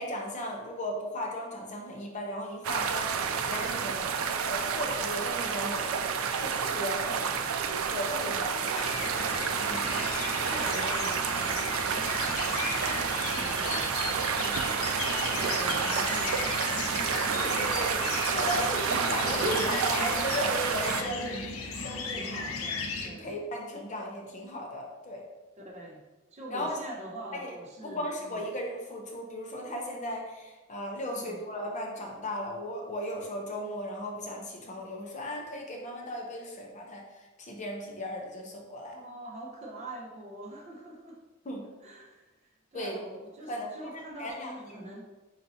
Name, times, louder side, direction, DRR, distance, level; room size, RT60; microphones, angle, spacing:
voice 1, 0.0-4.1 4.4-5.9 6.4-7.0 7.7-8.8 9.6-10.1 17.3-21.4 21.7-22.3 23.0-25.2 26.5-26.7 27.3-27.5 27.8-37.0 37.4-39.1 41.4-41.7 42.7-43.0 43.5-43.9 44.2-44.9, equal, 35° left, 0 dB, 0.7 m, -36 dB
sound 1, 2.6-21.0, right 6 dB, 85° right, 0.4 m, -30 dB
voice 2, 6.8-8.0 8.3-8.6 10.4-14.8 15.3-17.8 21.2-21.5 22.1-23.3 25.6-26.1 26.3-28.5 31.1-31.4 38.9-41.2 41.6-45.0, right 1 dB, 35° right, -1 dB, 0.7 m, -45 dB
sound 2, 8.7-23.1, left 4 dB, 85° left, 0.6 m, -35 dB
4.4 x 4.0 x 2.7 m, 1.1 s
head